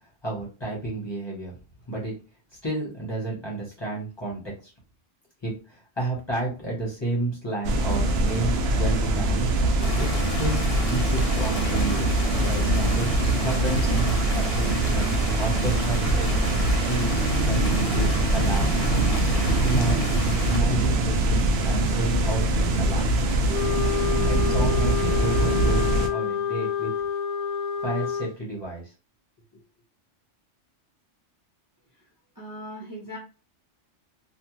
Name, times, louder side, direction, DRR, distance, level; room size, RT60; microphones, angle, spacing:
voice 1, 0.2-1.5 1.9-2.1 2.6-4.7 5.4-9.4 10.0-12.1 12.4-13.1 13.4-15.1 15.4-16.3 16.8-18.8 19.6-20.1 20.5-23.1 24.2-26.9 27.8-28.9 29.5-29.6, right 2 dB, 25° left, -5 dB, 0.9 m, -31 dB
sound 1, 7.6-26.1, right 2 dB, 65° right, 0.7 m, -23 dB
Stream, 9.8-20.6, left 3 dB, 60° left, 0.8 m, -36 dB
Wind instrument woodwind instrument, 23.5-28.3, left 8 dB, 10° left, 0.3 m, -28 dB
voice 2, 32.4-33.2, equal, 20° right, -3 dB, 0.8 m, -38 dB
2.4 x 2.3 x 3.0 m, 0.32 s
omnidirectional pair, 1.2 m